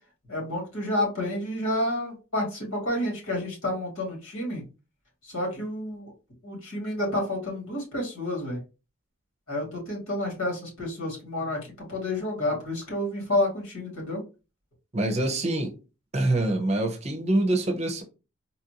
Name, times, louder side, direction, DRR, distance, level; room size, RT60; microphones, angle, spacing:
voice 1, 0.3-4.6 5.2-6.1 6.4-8.6 9.5-14.2, left 1 dB, 80° left, 2.1 m, -30 dB
voice 2, 14.9-15.7 16.1-18.0, right 1 dB, 30° right, 0.7 m, -25 dB
4.1 x 2.6 x 2.8 m
head